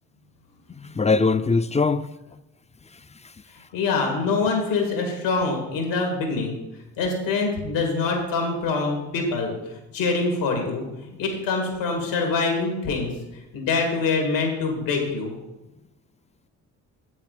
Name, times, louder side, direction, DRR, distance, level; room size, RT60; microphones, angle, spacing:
voice 1, 0.8-2.1 2.9-3.3 11.1-11.2, left 4 dB, 15° left, 0.4 m, -23 dB
voice 2, 3.7-6.5 7.0-9.5 9.9-13.1 13.5-15.3, left 4 dB, 90° left, 2.1 m, -25 dB
8.3 x 7.2 x 4.9 m
supercardioid pair, 55°, 43 cm